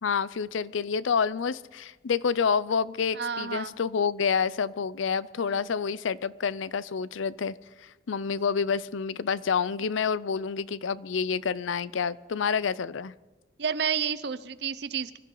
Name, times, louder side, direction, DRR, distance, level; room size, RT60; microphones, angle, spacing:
voice 1, 0.0-7.5 8.1-13.1, left 6 dB, 80° left, 19 dB, 0.5 m, -28 dB
voice 2, 3.1-3.7 5.5-5.6 13.6-15.2, right 7 dB, 55° right, 14 dB, 0.7 m, -30 dB
24.5 x 14.0 x 3.9 m, 1.1 s
head